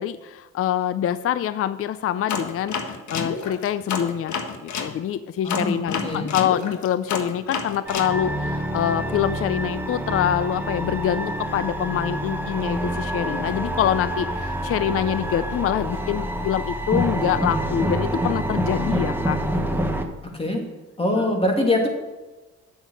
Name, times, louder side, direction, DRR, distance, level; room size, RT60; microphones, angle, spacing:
voice 1, 0.0-4.4 4.6-19.4 19.8-19.9 21.1-21.3, left 10 dB, 50° left, 14 dB, 0.5 m, -25 dB
sound 1, 2.3-4.9 5.5-8.1, left 5 dB, 70° left, 1.4 m, -29 dB
voice 2, 5.4-6.3 20.3-20.6 21.0-21.9, left 1 dB, 20° left, 1 dB, 2.5 m, -23 dB
sound 2, 7.9-20.1, right 1 dB, 5° right, 1.2 m, -27 dB
9.0 x 7.2 x 6.2 m, 1.2 s
cardioid pair, 90°, 30 cm